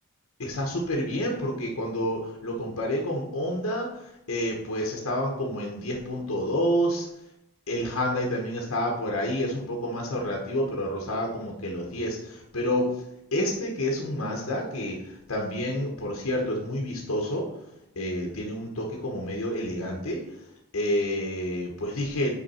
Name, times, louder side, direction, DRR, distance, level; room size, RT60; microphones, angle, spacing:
voice 1, 0.4-7.1 7.7-13.0 13.3-17.5 18.0-20.2 20.7-22.3, equal, 70° left, -1 dB, 1.0 m, -29 dB
5.5 x 4.8 x 4.2 m, 0.82 s
head